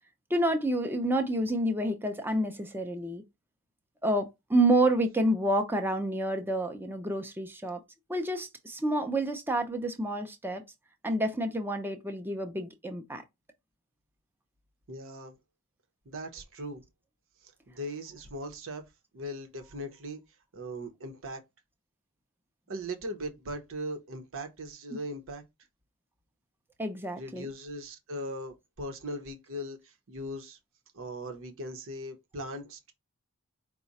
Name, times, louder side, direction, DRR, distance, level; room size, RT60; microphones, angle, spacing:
voice 1, 0.3-3.2 4.0-7.8 8.1-10.6 11.0-13.2 26.8-27.5, right 1 dB, 10° right, 0.6 m, -29 dB
voice 2, 14.9-15.4 16.0-16.8 17.4-18.9 19.1-20.2 20.5-21.4 22.7-25.4 27.2-30.6 30.9-32.9, equal, 60° right, 0.9 m, -39 dB
4.8 x 2.2 x 4.0 m
head